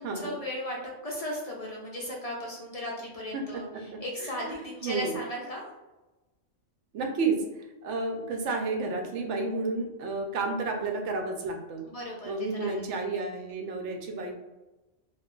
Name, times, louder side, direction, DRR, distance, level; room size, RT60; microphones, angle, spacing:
voice 1, 0.0-5.7 11.9-12.9, left 1 dB, 50° left, -3 dB, 0.5 m, -36 dB
voice 2, 3.3-4.4 4.8-5.2 6.9-11.9 12.2-14.3, right 3 dB, 75° right, 3 dB, 0.9 m, -31 dB
2.4 x 2.2 x 3.7 m, 1.1 s
omnidirectional pair, 1.2 m